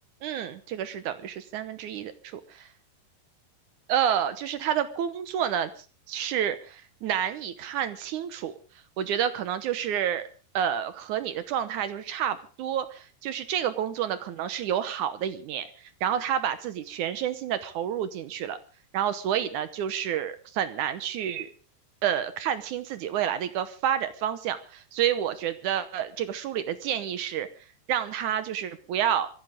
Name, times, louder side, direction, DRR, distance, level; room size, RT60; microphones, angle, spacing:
voice 1, 0.2-2.7 3.9-5.7 6.1-8.5 9.0-10.2 10.5-15.7 16.0-18.6 18.9-21.5 22.0-27.5 27.9-29.3, right 9 dB, 75° right, 12 dB, 1.9 m, -29 dB
23.5 x 15.0 x 3.6 m, 0.36 s
omnidirectional pair, 4.6 m